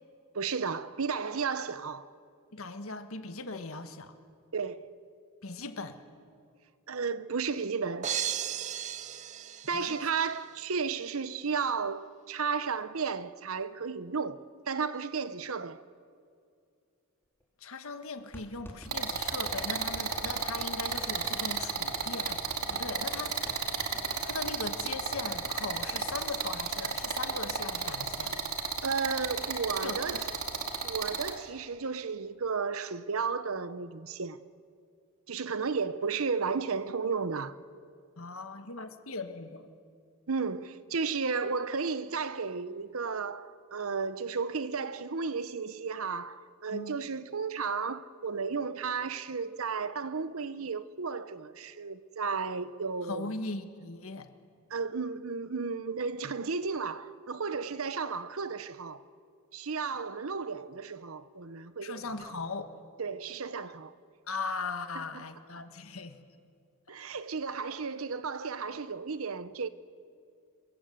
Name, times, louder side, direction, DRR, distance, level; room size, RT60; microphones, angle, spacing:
voice 1, 0.3-2.1 4.5-4.9 6.9-8.1 9.7-15.8 28.8-30.3 30.8-34.4 35.3-37.5 40.3-53.4 54.7-59.0 59.5-62.0 63.0-63.9 64.9-65.2 66.9-69.7, right 5 dB, 70° right, 0.9 m, -33 dB
voice 2, 2.5-4.1 5.4-6.0 9.7-10.0 17.6-22.4 22.7-23.5 24.2-28.4 29.8-30.2 38.2-39.7 46.7-47.0 53.1-54.3 61.8-62.7 64.3-66.2 66.9-67.0, left 3 dB, 65° left, 1.7 m, -39 dB
sound 1, 8.0-10.3, right 9 dB, 35° right, 0.6 m, -35 dB
sound 2, 17.4-17.5 18.3-26.3 26.6-26.7 27.0-27.3, equal, 10° left, 3.4 m, -49 dB
sound 3, 18.9-31.3, right 6 dB, 85° right, 2.5 m, -33 dB
27.0 x 23.0 x 7.9 m
head